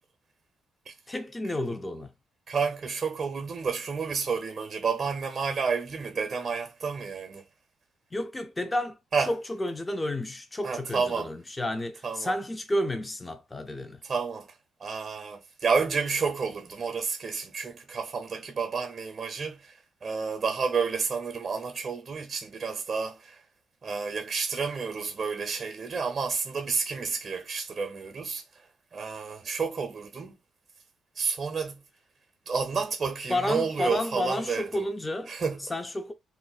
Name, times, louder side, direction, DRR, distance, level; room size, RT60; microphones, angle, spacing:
voice 1, 1.1-2.1 8.1-14.0 33.3-35.3 35.7-36.1, left 1 dB, 20° left, 0.4 m, -31 dB
voice 2, 2.5-7.4 9.1-9.3 10.6-11.3 12.0-12.3 14.0-14.5 14.8-23.4 23.8-28.4 28.9-30.4 31.2-31.8 32.5-34.8 35.3-35.6, right 5 dB, 45° right, 0.5 m, -30 dB
2.5 x 2.1 x 3.8 m
cardioid pair, 90°, 0 cm